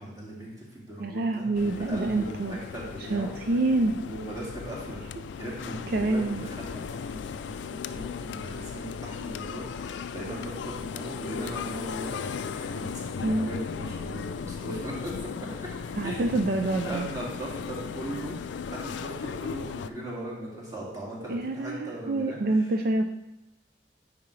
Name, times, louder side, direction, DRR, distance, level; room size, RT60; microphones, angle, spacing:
voice 1, 0.0-3.4 4.0-5.0 5.4-15.5 16.0-16.3 16.8-22.4, right 1 dB, 20° right, -5 dB, 2.0 m, -38 dB
voice 2, 1.0-2.6 3.0-4.0 5.9-6.4 13.2-13.5 15.9-17.1 21.3-23.1, right 2 dB, 55° right, 4 dB, 0.4 m, -27 dB
sound 1, 1.5-19.9, left 6 dB, 80° left, 0.3 m, -37 dB
9.2 x 4.9 x 3.2 m, 0.93 s
head